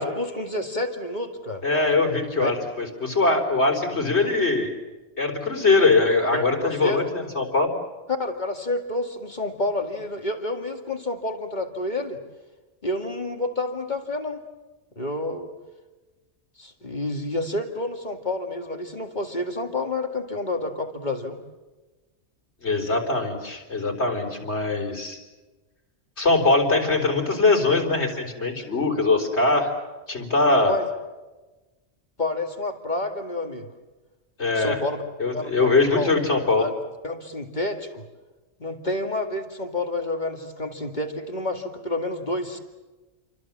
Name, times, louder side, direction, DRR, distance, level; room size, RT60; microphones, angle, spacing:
voice 1, 0.0-1.6 2.4-2.5 6.3-7.1 8.2-12.2 12.8-14.4 15.0-15.5 16.6-21.4 30.7-30.9 32.2-33.7 34.6-35.0 35.3-35.7 36.0-36.1 36.6-36.7 37.0-38.0 38.6-42.6, left 2 dB, 40° left, 4 dB, 2.2 m, -29 dB
voice 2, 1.6-4.7 5.2-7.7 22.6-25.2 26.2-29.7 30.1-30.7 34.4-34.8 35.2-36.7, left 3 dB, 70° left, 2 dB, 4.3 m, -22 dB
29.0 x 24.0 x 7.4 m, 1.2 s
omnidirectional pair, 1.2 m